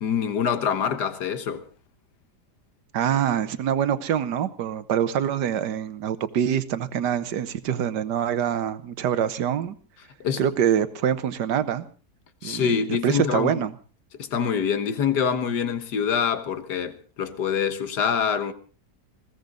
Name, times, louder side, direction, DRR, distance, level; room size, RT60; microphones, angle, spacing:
voice 1, 0.0-1.7 10.2-10.4 12.4-13.6 14.2-18.5, left 7 dB, 70° left, 1.9 m, -25 dB
voice 2, 2.9-9.8 10.4-11.9 12.4-12.7 13.0-13.7, right 9 dB, 75° right, 1.6 m, -25 dB
21.0 x 17.0 x 3.9 m
omnidirectional pair, 1.9 m